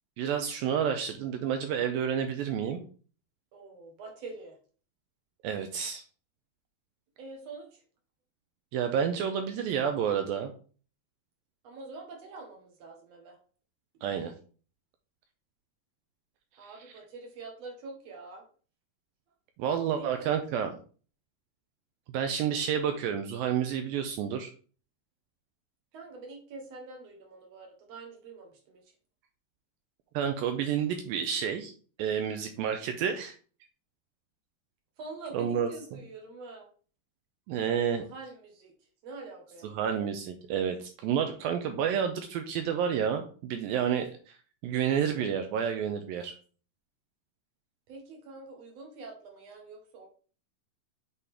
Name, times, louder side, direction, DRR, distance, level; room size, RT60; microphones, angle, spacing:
voice 1, 0.2-2.8 5.4-6.0 8.7-10.5 14.0-14.3 16.6-16.7 19.6-20.7 22.1-24.5 30.1-31.7 32.0-33.3 35.3-36.0 37.5-38.0 39.7-44.4 44.6-46.3, right 8 dB, 85° right, 6 dB, 2.1 m, -30 dB
voice 2, 3.5-4.6 7.2-7.8 11.6-13.4 16.6-18.4 19.6-20.4 25.9-28.9 35.0-36.7 38.0-39.8 47.9-50.1, right 3 dB, 55° right, 1 dB, 2.1 m, -45 dB
8.2 x 4.1 x 3.6 m, 0.40 s
omnidirectional pair, 4.7 m